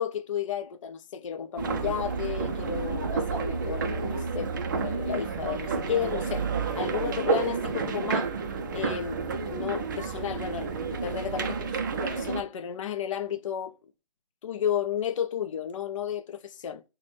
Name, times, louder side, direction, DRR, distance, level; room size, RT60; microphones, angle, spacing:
voice 1, 0.0-6.5 6.8-8.3 8.7-13.8 14.4-16.8, left 8 dB, 50° left, 0.4 m, -33 dB
sound 1, 1.6-12.4, right 4 dB, 30° right, 0.4 m, -30 dB
5.7 x 2.2 x 3.1 m
figure-of-eight pair, 145°, 21 cm